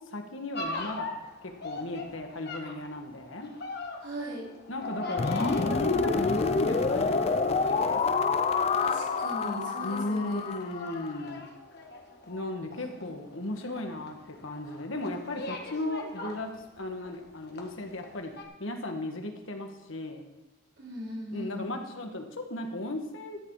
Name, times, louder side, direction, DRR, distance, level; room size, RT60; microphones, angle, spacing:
voice 1, 0.1-1.1 1.4-3.5 4.7-8.1 9.8-11.4 12.3-18.3 18.6-20.3 21.3-23.4, left 2 dB, 80° left, 4 dB, 1.6 m, -35 dB
sound 1, 0.5-17.2 17.5-18.1 18.3-18.4, left 2 dB, 55° left, 1.6 m, -37 dB
voice 2, 4.0-4.5 8.8-10.5 12.8-13.1 20.8-21.7, equal, 65° right, -5 dB, 4.5 m, -38 dB
sound 2, 5.2-11.1, left 4 dB, 30° left, 0.4 m, -28 dB
13.5 x 8.9 x 4.8 m, 0.94 s
head